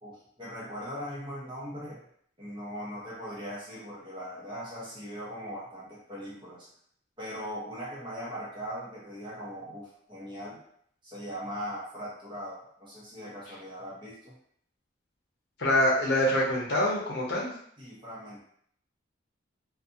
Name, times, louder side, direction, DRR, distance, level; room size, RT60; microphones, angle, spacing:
voice 1, 0.0-2.0 2.4-6.7 7.2-10.6 11.0-14.3 17.8-18.4, equal, 25° right, -8 dB, 0.9 m, -40 dB
voice 2, 15.6-17.5, left 1 dB, 60° left, -4 dB, 0.7 m, -25 dB
2.5 x 2.3 x 2.6 m, 0.65 s
head